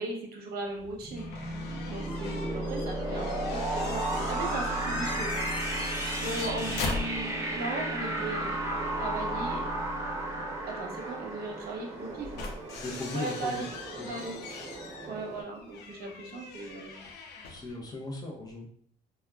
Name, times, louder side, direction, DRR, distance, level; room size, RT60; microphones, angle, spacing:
voice 1, 0.0-1.5 1.9-5.5 6.1-8.6 9.0-9.7 10.7-12.4 13.1-13.8 14.1-14.4 15.1-17.1, right 2 dB, 65° right, 0 dB, 0.8 m, -37 dB
sound 1, 0.8-12.5, right 1 dB, 15° right, 0.4 m, -33 dB
sound 2, 1.2-7.6 8.0-8.1 10.1-10.2 12.0-17.8, left 4 dB, 85° left, 0.5 m, -40 dB
Train, 1.9-15.4, right 3 dB, 40° right, 1.0 m, -45 dB
voice 2, 12.8-13.6 14.0-14.4 17.5-18.7, left 2 dB, 20° left, -1 dB, 0.7 m, -38 dB
3.5 x 2.2 x 2.3 m, 0.62 s
cardioid pair, 110°, 17 cm